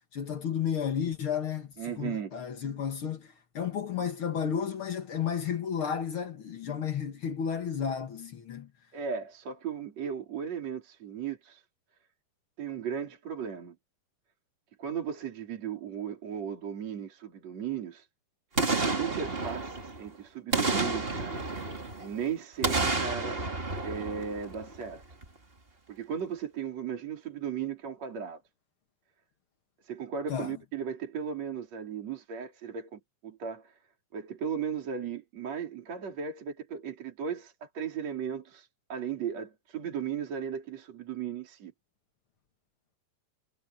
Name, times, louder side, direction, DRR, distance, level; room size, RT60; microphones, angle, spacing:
voice 1, 0.1-8.7 30.3-30.5, left 8 dB, 60° left, 1.3 m, -32 dB
voice 2, 1.8-2.3 8.9-11.6 12.6-13.8 14.8-18.1 18.8-21.4 22.0-23.4 23.8-25.0 25.9-28.4 29.8-33.8 34.1-41.7, right 7 dB, 45° right, 4.5 m, -36 dB
Boom, 18.6-20.1 20.5-22.2 22.6-24.9 25.2-25.3, right 3 dB, 20° right, 1.5 m, -30 dB
omnidirectional pair, 4.5 m